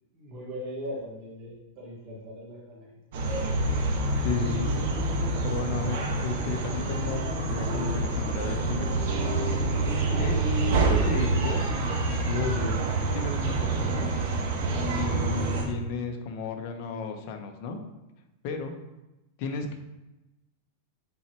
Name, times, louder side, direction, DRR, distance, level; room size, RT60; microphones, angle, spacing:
voice 1, 0.1-2.9, equal, 45° right, -5 dB, 2.1 m, -39 dB
sound 1, 3.1-15.6, right 2 dB, 60° right, 1.5 m, -27 dB
voice 2, 4.2-4.8 5.4-8.9 10.2-10.4 10.7-14.1 15.0-17.8 18.4-18.7 19.4-19.8, left 4 dB, 50° left, 5 dB, 1.0 m, -33 dB
9.2 x 4.4 x 3.1 m, 0.99 s
supercardioid pair, 145°, 0 cm